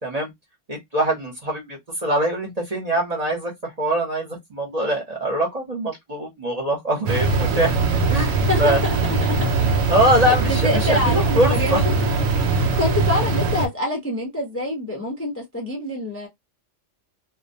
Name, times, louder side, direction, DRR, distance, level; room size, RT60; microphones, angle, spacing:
voice 1, 0.7-3.5 3.8-8.8 9.4-9.5 9.9-11.8 12.6-12.7, right 1 dB, 35° right, 0.8 m, -23 dB
sound 1, 7.1-13.7, right 3 dB, 70° right, 0.8 m, -21 dB
voice 2, 8.1-9.5 10.0-11.8 12.6-16.3, left 1 dB, 15° left, 0.5 m, -26 dB
2.3 x 2.1 x 2.6 m
omnidirectional pair, 1.3 m